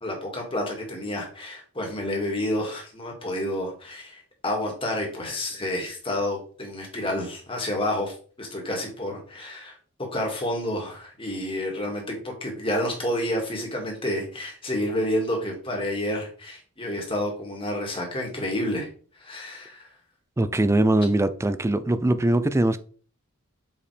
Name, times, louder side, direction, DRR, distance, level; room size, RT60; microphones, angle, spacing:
voice 1, 0.0-9.8 10.1-18.9 19.2-19.9, left 1 dB, 25° left, 1.9 m, -29 dB
voice 2, 20.4-22.8, right 1 dB, 15° right, 0.4 m, -21 dB
7.0 x 5.0 x 3.3 m
head